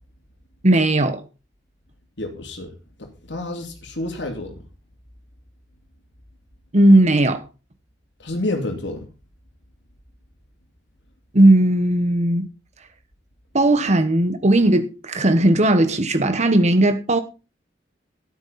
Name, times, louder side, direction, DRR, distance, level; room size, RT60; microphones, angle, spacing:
voice 1, 0.6-1.2 6.7-7.4 11.3-12.5 13.5-17.2, right 1 dB, 40° right, 1.3 m, -16 dB
voice 2, 2.2-2.7 3.0-4.5 8.2-9.1, left 2 dB, 85° left, 2.9 m, -29 dB
13.5 x 11.5 x 4.2 m
head